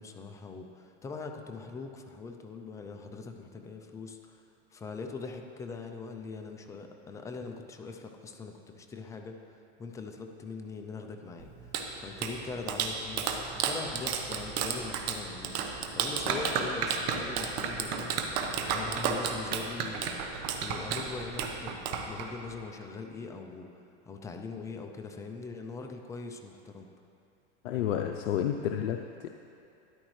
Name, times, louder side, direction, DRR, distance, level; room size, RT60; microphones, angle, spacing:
voice 1, 0.0-4.4 4.7-9.4 9.8-15.6 15.9-26.9, left 4 dB, 10° left, 4 dB, 0.4 m, -42 dB
Clapping, 11.4-22.6, right 6 dB, 45° right, 1.0 m, -33 dB
voice 2, 27.6-29.3, left 9 dB, 90° left, 5 dB, 0.6 m, -30 dB
13.0 x 11.0 x 3.2 m, 2.7 s
supercardioid pair, 135°, 36 cm